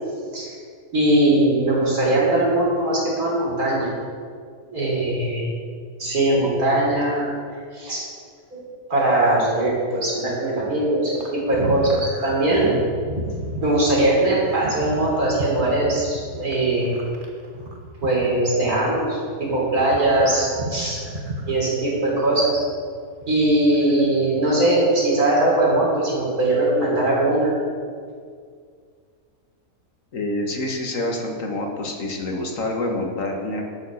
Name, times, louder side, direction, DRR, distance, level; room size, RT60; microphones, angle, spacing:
voice 1, 0.9-3.9 4.7-5.5 6.0-7.3 7.7-8.0 8.5-8.6 8.9-12.8 13.6-17.0 18.0-21.0 21.5-22.6 23.3-27.5, right 1 dB, 80° right, -4 dB, 4.1 m, -20 dB
sound 1, 11.1-18.9 19.2-22.8 23.1-24.0, right 1 dB, 35° right, 1.6 m, -33 dB
voice 2, 30.1-33.6, left 1 dB, 60° left, 1 dB, 1.8 m, -27 dB
11.5 x 8.1 x 6.4 m, 2.1 s
omnidirectional pair, 1.6 m